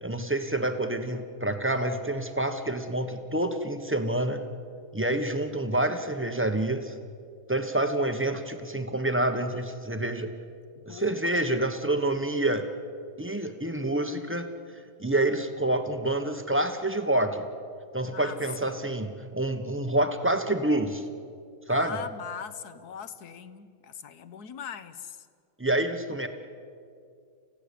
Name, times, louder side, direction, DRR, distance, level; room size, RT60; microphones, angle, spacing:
voice 1, 0.0-4.4 4.9-7.0 7.5-10.3 10.9-12.7 13.2-17.5 17.9-21.1 21.7-22.0 25.6-26.3, right 1 dB, 10° right, 7 dB, 0.7 m, -28 dB
voice 2, 10.8-11.4 18.0-18.4 18.6-18.8 21.7-25.2, left 7 dB, 60° left, 13 dB, 1.3 m, -41 dB
29.5 x 16.0 x 8.5 m, 2.3 s
omnidirectional pair, 2.3 m